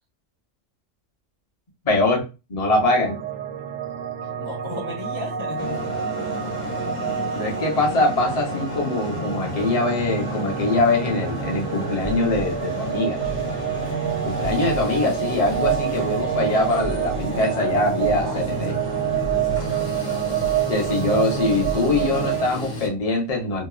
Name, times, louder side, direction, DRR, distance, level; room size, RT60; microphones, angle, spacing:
voice 1, 1.8-3.2 7.3-13.2 14.2-18.7 20.7-23.7, left 2 dB, 35° left, 0 dB, 0.7 m, -23 dB
sound 1, 2.8-22.5, right 9 dB, 85° right, 1.0 m, -28 dB
voice 2, 4.4-5.9 18.2-18.9, left 2 dB, 50° left, -2 dB, 0.3 m, -35 dB
sound 2, 5.6-22.9, left 2 dB, 85° left, 1.3 m, -32 dB
2.9 x 2.1 x 2.3 m, 0.28 s
omnidirectional pair, 1.3 m